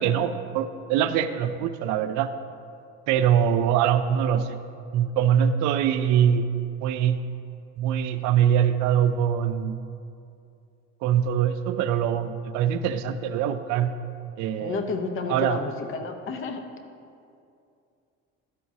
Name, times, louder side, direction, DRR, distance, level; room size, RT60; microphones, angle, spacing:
voice 1, 0.0-2.3 3.1-4.6 4.9-6.5 6.8-7.2 7.8-9.8 11.0-13.9 14.4-14.9 15.3-15.6, right 9 dB, 75° right, 11 dB, 0.5 m, -23 dB
voice 2, 14.6-16.6, left 4 dB, 45° left, 6 dB, 0.8 m, -31 dB
12.0 x 7.6 x 2.8 m, 2.5 s
cardioid pair, 130°, 29 cm